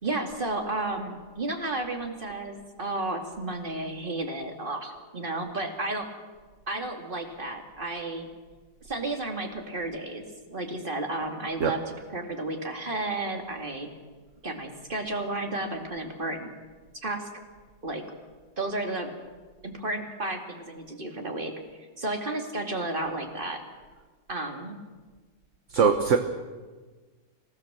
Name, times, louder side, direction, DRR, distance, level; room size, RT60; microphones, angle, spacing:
voice 1, 0.0-6.1 6.7-8.3 8.8-11.8 12.1-13.9 14.4-16.5 17.0-17.3 17.8-18.0 18.6-19.1 19.6-21.5 22.0-23.6 24.3-24.8, right 2 dB, 25° right, 4 dB, 2.6 m, -32 dB
voice 2, 25.7-26.2, right 6 dB, 45° right, 7 dB, 1.3 m, -21 dB
26.0 x 17.0 x 7.6 m, 1.4 s
omnidirectional pair, 2.0 m